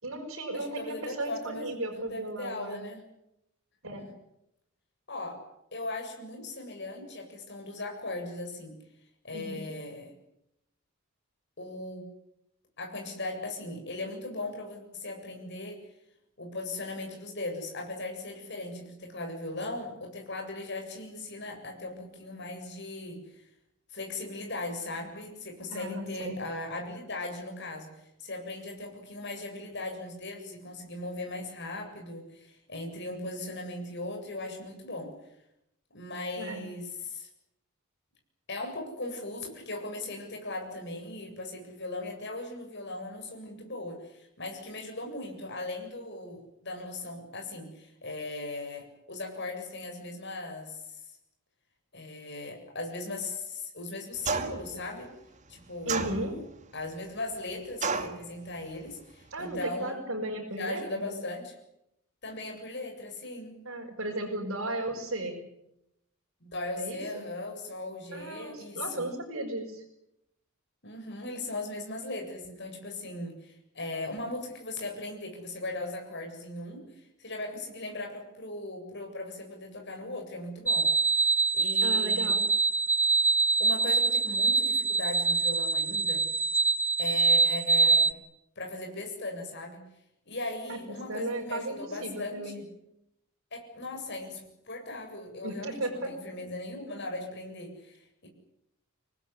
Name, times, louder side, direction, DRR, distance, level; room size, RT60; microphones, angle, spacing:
voice 1, 0.0-2.9 3.8-4.1 9.3-9.6 25.7-26.4 36.4-36.7 55.9-56.3 59.3-61.1 63.7-65.4 66.8-67.3 68.1-69.8 81.8-82.4 90.7-92.6 95.4-96.1, right 1 dB, 60° right, -3 dB, 5.8 m, -35 dB
voice 2, 0.5-3.0 4.0-4.1 5.1-5.3 5.7-8.7 9.2-10.1 11.6-12.1 12.8-15.8 16.4-23.5 23.9-35.1 35.9-37.3 38.5-51.0 51.9-55.1 55.5-60.0 60.5-61.5 62.2-63.6 66.4-69.1 70.8-80.9 81.5-82.3 83.6-86.3 87.0-88.1 88.6-89.8 90.3-92.6 93.5-98.3, left 2 dB, 55° left, 3 dB, 7.9 m, -38 dB
sound 1, 54.2-54.7 55.9-56.6 57.8-58.2, right 4 dB, 35° right, 2.2 m, -31 dB
sound 2, 80.7-88.1, right 4 dB, 10° right, 1.0 m, -24 dB
26.0 x 19.0 x 9.9 m, 0.82 s
head